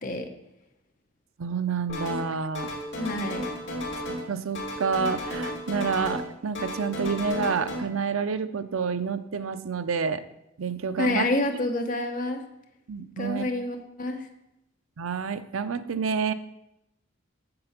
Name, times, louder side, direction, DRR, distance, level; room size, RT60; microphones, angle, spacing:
voice 1, 1.4-2.7 4.3-10.2 10.6-11.3 12.9-13.4 15.0-16.3, right 5 dB, 80° right, 12 dB, 0.6 m, -28 dB
sound 1, 1.9-2.3 2.5-4.3 4.5-6.3 6.6-7.8, left 1 dB, 60° left, 3.0 m, -33 dB
voice 2, 3.0-3.4 11.0-12.4 13.2-14.3, left 2 dB, 40° left, 4 dB, 1.1 m, -28 dB
7.8 x 7.7 x 5.8 m, 0.86 s
head